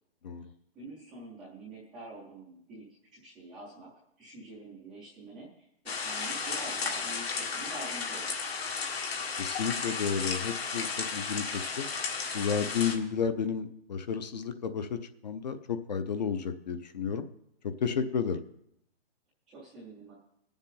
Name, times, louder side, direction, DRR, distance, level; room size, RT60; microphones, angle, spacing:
voice 1, 0.7-3.9 4.2-5.7 6.0-8.4 19.5-20.1, right 2 dB, ahead, -12 dB, 0.5 m, -46 dB
sound 1, 5.9-13.0, left 5 dB, 70° left, 1.9 m, -34 dB
voice 2, 9.4-11.9 12.3-17.3 17.8-18.4, left 6 dB, 40° left, 10 dB, 0.7 m, -32 dB
19.0 x 7.2 x 3.9 m, 0.76 s
hypercardioid pair, 160°, 32 cm